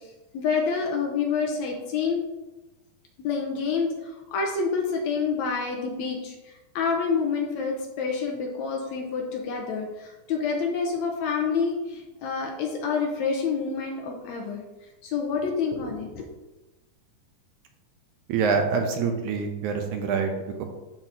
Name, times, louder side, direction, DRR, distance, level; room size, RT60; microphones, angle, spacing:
voice 1, 0.3-2.2 3.2-6.4 6.8-14.6 15.0-16.3, left 5 dB, 75° left, 1 dB, 1.9 m, -28 dB
voice 2, 18.3-20.6, right 5 dB, 80° right, 4 dB, 2.0 m, -26 dB
11.5 x 4.0 x 2.7 m, 1.1 s
omnidirectional pair, 3.7 m